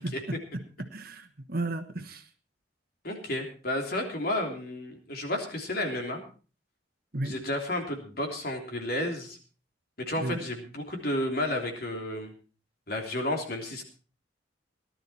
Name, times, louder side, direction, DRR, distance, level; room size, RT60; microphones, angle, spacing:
voice 1, 0.0-2.2 7.1-7.4 10.2-10.4, right 1 dB, 50° right, 6 dB, 1.3 m, -34 dB
voice 2, 3.0-6.2 7.2-9.4 10.0-12.3 12.9-13.8, left 1 dB, 50° left, 2 dB, 3.3 m, -32 dB
18.0 x 12.0 x 4.3 m, 0.37 s
head